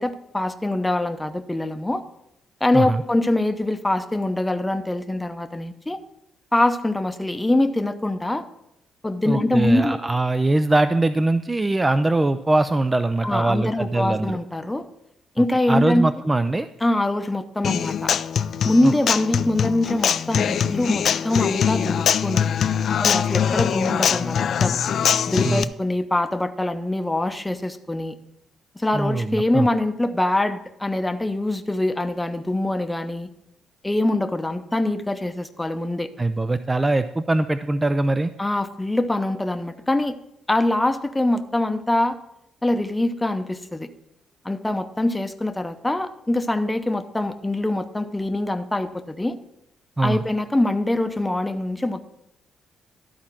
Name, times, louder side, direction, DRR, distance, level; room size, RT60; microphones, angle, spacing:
voice 1, 0.0-2.0 2.6-6.0 6.5-8.4 9.0-10.0 13.2-14.8 15.4-16.0 16.8-18.1 18.6-24.8 25.3-28.2 28.8-33.3 33.8-36.1 38.4-40.2 40.5-42.2 42.6-43.9 44.4-49.4 50.0-52.0, left 1 dB, 10° left, 8 dB, 0.7 m, -24 dB
voice 2, 9.3-14.4 15.7-16.7 18.8-18.9 25.4-25.7 28.9-29.7 36.2-38.3 50.0-50.2, right 2 dB, 20° right, 11 dB, 0.4 m, -22 dB
Human voice / Acoustic guitar, 17.6-25.6, left 8 dB, 60° left, 0.3 m, -22 dB
12.5 x 4.3 x 5.9 m, 0.82 s
cardioid pair, 90°, 0 cm